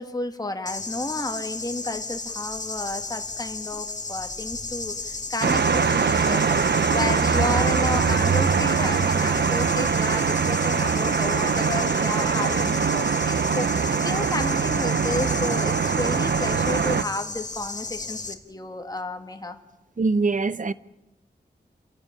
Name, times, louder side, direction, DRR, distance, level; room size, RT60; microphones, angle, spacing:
voice 1, 0.0-19.6, left 2 dB, 25° left, 2.0 m, -32 dB
sound 1, 0.6-18.3, left 3 dB, 45° left, 1.9 m, -34 dB
sound 2, 5.4-17.0, right 6 dB, 90° right, 0.8 m, -22 dB
voice 2, 20.0-20.7, right 3 dB, 50° right, 0.8 m, -23 dB
29.0 x 11.5 x 9.8 m
wide cardioid pair, 90°, 17 cm